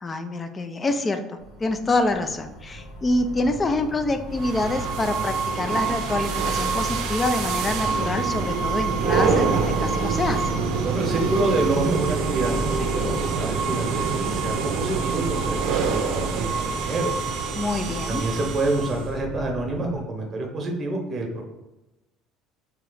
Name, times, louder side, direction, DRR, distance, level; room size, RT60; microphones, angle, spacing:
voice 1, 0.0-10.6 17.5-18.2, left 2 dB, 25° left, 8 dB, 0.4 m, -26 dB
sound 1, 1.4-20.0, equal, 70° left, 1.2 m, -35 dB
sound 2, 4.4-19.1, right 5 dB, 70° right, 0.5 m, -26 dB
voice 2, 10.8-17.1 18.1-21.4, right 2 dB, 30° right, 1 dB, 0.9 m, -27 dB
3.1 x 2.8 x 3.9 m, 1.0 s
cardioid pair, 120°, 0 cm